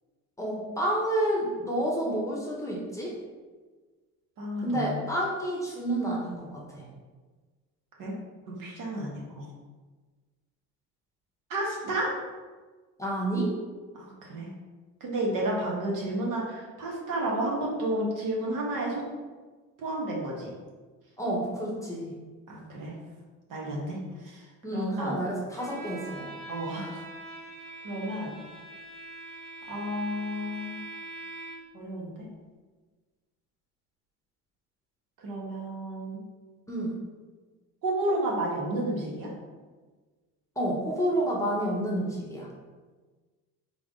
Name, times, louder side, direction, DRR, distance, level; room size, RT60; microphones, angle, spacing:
voice 1, 0.4-3.1 4.6-6.8 13.0-13.5 21.2-22.1 24.6-26.3 36.7-36.9 40.6-42.5, right 1 dB, 10° left, -3 dB, 0.9 m, -29 dB
voice 2, 4.4-5.0 8.0-8.1 8.5-9.4 11.5-12.1 13.9-14.5 15.0-19.0 19.8-20.5 22.5-22.9 23.5-24.5 24.7-25.2 26.5-27.0 27.8-28.3 29.7-30.8 31.7-32.3 35.2-36.2 37.8-39.3, right 1 dB, 60° right, -3 dB, 1.4 m, -31 dB
Bowed string instrument, 25.5-31.8, right 2 dB, 80° right, 1.3 m, -43 dB
3.9 x 3.5 x 3.6 m, 1.4 s
cardioid pair, 110°, 35 cm